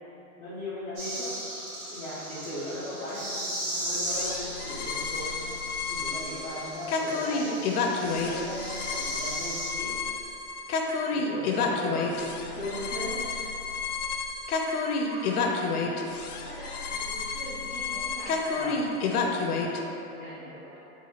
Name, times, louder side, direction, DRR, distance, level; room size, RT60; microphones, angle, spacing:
voice 1, 0.4-1.3 1.9-5.6 5.9-9.9 11.1-13.2 18.5-18.9 20.1-20.5, left 1 dB, 20° left, -14 dB, 0.4 m, -37 dB
sound 1, 1.0-9.7, equal, 45° right, 1.3 m, -37 dB
voice 2, 3.0-3.5 11.5-12.1 15.1-21.1, right 1 dB, 25° right, -10 dB, 0.9 m, -44 dB
sound 2, 4.1-19.8, left 4 dB, 85° left, 0.6 m, -30 dB
4.0 x 2.4 x 2.8 m, 2.8 s
hypercardioid pair, 155°, 44 cm